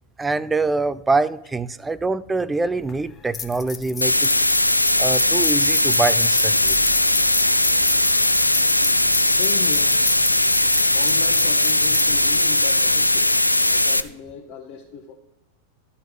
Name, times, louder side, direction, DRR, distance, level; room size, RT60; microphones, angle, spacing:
voice 1, 0.2-4.3 5.0-6.8, right 3 dB, 10° right, 18 dB, 0.3 m, -24 dB
sound 1, 2.8-13.2, left 6 dB, 25° left, 0.7 m, -34 dB
sound 2, 4.0-14.0, left 1 dB, 85° left, 0.3 m, -19 dB
voice 2, 9.3-10.1 10.9-13.4 13.7-15.1, left 8 dB, 45° left, 1 dB, 0.9 m, -36 dB
12.0 x 4.4 x 5.3 m, 0.90 s
figure-of-eight pair, 90°, 0 cm